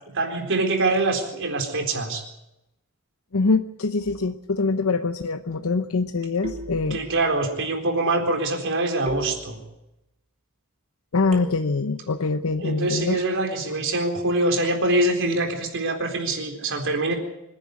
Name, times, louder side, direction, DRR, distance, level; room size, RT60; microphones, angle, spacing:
voice 1, 0.1-2.2 6.9-9.6 12.6-17.1, right 2 dB, 60° right, 4 dB, 4.1 m, -24 dB
voice 2, 3.3-7.0 11.1-13.2, left 3 dB, 70° left, 8 dB, 0.8 m, -24 dB
sound 1, 4.0-4.6 6.4-7.4 9.1-10.0 11.3-12.0, right 1 dB, 30° right, 3.3 m, -37 dB
25.5 x 11.0 x 9.7 m, 0.91 s
head